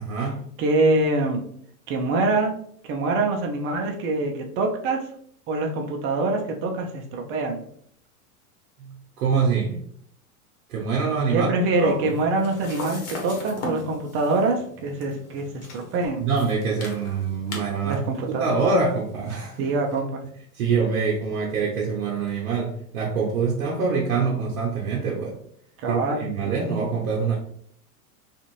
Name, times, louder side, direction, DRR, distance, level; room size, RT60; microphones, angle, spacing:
voice 1, 0.0-0.4 8.8-9.8 10.7-12.1 16.2-19.7 20.5-25.4 25.9-27.3, right 5 dB, 80° right, -2 dB, 0.8 m, -25 dB
voice 2, 0.6-1.4 1.9-2.5 2.9-5.0 5.5-7.6 11.3-16.3 17.8-18.5 19.6-20.2 25.8-26.6, right 2 dB, 30° right, 2 dB, 0.5 m, -24 dB
sound 1, 11.7-20.0, left 2 dB, 65° left, 1.1 m, -40 dB
2.5 x 2.5 x 3.0 m, 0.65 s
hypercardioid pair, 115°, 45 cm